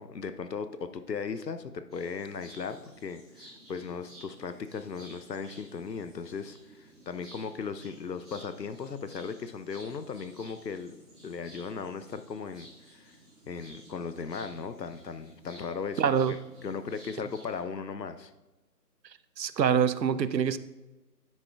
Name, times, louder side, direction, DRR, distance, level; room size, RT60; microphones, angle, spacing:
voice 1, 0.0-11.0 11.2-13.1 13.5-18.3, left 5 dB, 85° left, 10 dB, 0.8 m, -37 dB
sound 1, 1.9-17.6, right 1 dB, ahead, 2.0 m, -54 dB
voice 2, 16.0-16.4 19.4-20.6, right 7 dB, 85° right, 14 dB, 0.6 m, -25 dB
9.7 x 7.5 x 2.3 m, 1.1 s
figure-of-eight pair, 155°, 49 cm